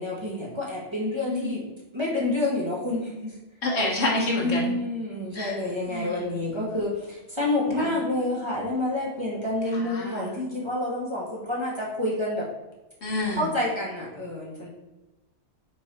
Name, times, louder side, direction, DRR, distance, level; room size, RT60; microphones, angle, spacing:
voice 1, 0.0-1.6 1.9-3.3 4.3-12.5 13.4-14.7, left 2 dB, 25° right, -5 dB, 1.7 m, -28 dB
voice 2, 3.6-4.7 5.3-5.6 5.9-6.3 7.8-7.9 9.7-10.2 13.0-13.4, left 2 dB, 65° left, -3 dB, 1.7 m, -28 dB
5.4 x 4.7 x 4.3 m, 1.0 s
omnidirectional pair, 1.2 m